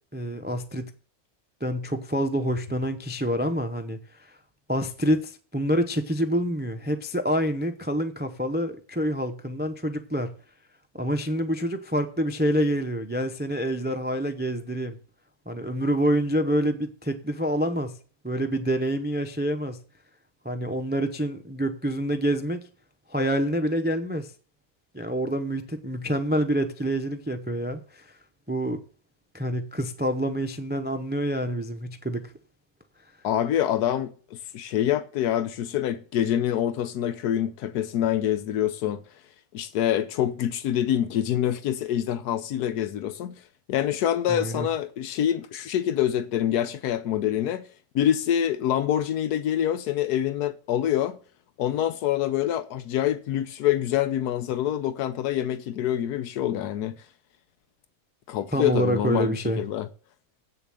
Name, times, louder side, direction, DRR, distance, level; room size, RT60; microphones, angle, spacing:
voice 1, 0.1-0.9 1.6-4.0 4.7-10.3 10.9-15.0 15.5-18.0 18.2-19.8 20.4-22.7 23.1-24.3 24.9-28.1 28.5-28.8 29.3-32.3 44.3-44.7 58.5-59.6, equal, 15° right, 0.4 m, -27 dB
voice 2, 33.2-34.1 34.5-39.0 39.5-43.4 43.7-47.7 47.9-51.2 51.6-56.9 58.3-59.9, left 11 dB, 90° left, 1.2 m, -26 dB
8.3 x 7.0 x 7.6 m
omnidirectional pair, 1.6 m